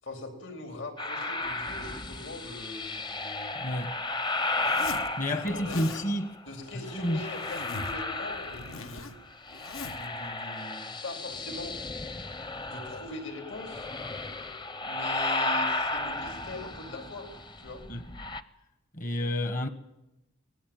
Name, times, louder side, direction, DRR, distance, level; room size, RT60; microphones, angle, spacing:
voice 1, 0.0-3.8 5.3-5.9 6.5-9.1 9.9-11.8 12.7-13.9 14.8-17.3 17.6-17.8, left 2 dB, 65° left, 4.2 m, -42 dB
sound 1, 1.0-6.3 6.8-9.1 9.3-18.4, left 2 dB, 20° left, 0.8 m, -34 dB
voice 2, 3.5-4.0 5.2-6.3 6.7-7.2 17.9-18.1 18.9-19.7, left 1 dB, 40° left, 1.2 m, -30 dB
Zipper (clothing), 4.6-5.1 5.5-6.0 6.9-8.0 8.3-10.1, left 3 dB, 85° left, 1.5 m, -41 dB
24.0 x 19.0 x 9.1 m
head